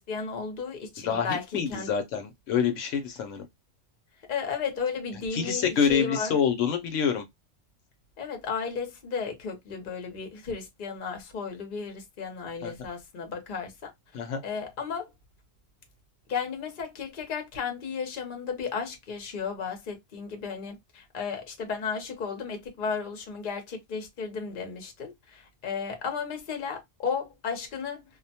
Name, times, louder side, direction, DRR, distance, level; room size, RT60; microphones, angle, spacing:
voice 1, 0.0-1.9 4.3-6.4 8.2-15.1 16.3-28.0, left 5 dB, 50° left, 0.9 m, -34 dB
voice 2, 1.5-3.5 5.3-7.2 12.6-12.7 14.1-14.4, left 7 dB, 80° left, 1.0 m, -26 dB
2.4 x 2.1 x 2.7 m
omnidirectional pair, 1.3 m